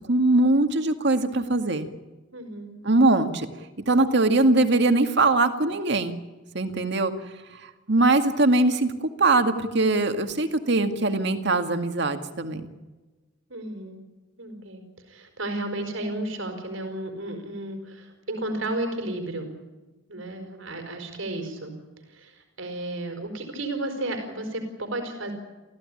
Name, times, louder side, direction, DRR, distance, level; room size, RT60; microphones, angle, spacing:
voice 1, 0.1-1.9 2.8-3.5 3.9-6.2 6.5-7.1 7.9-8.9 9.2-12.6, right 2 dB, 60° right, 7 dB, 2.1 m, -21 dB
voice 2, 2.3-2.8 13.5-14.0 14.4-19.5 20.1-21.7 22.1-25.3, right 1 dB, 85° right, 5 dB, 4.8 m, -33 dB
28.0 x 15.5 x 10.0 m, 1.2 s
head